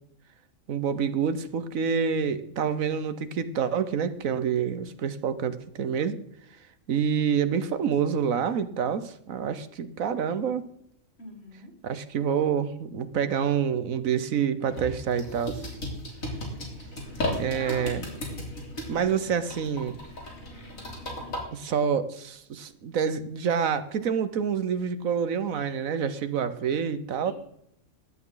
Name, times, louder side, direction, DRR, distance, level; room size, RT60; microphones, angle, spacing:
voice 1, 0.7-6.2 6.9-10.7 11.8-15.6 17.4-18.1 18.9-19.9 21.5-27.3, right 7 dB, 90° right, 12 dB, 1.4 m, -27 dB
voice 2, 11.2-11.7 17.2-18.0 27.2-27.3, left 1 dB, 50° left, -1 dB, 4.6 m, -44 dB
sound 1, 14.7-21.4, left 1 dB, 90° left, 3.9 m, -36 dB
15.5 x 11.5 x 3.9 m, 0.73 s
omnidirectional pair, 1.4 m